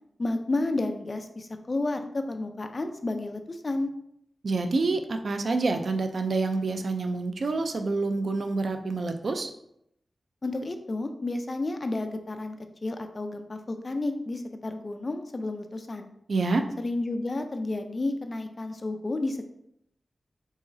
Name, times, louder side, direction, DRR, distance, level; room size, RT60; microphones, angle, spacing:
voice 1, 0.2-3.9 10.4-12.6 12.8-16.1 16.8-19.4, left 2 dB, 40° left, 6 dB, 0.5 m, -31 dB
voice 2, 4.4-9.5 16.3-16.6, right 3 dB, 70° right, 6 dB, 0.4 m, -27 dB
4.8 x 3.9 x 2.7 m, 0.76 s
wide cardioid pair, 95°, 0 cm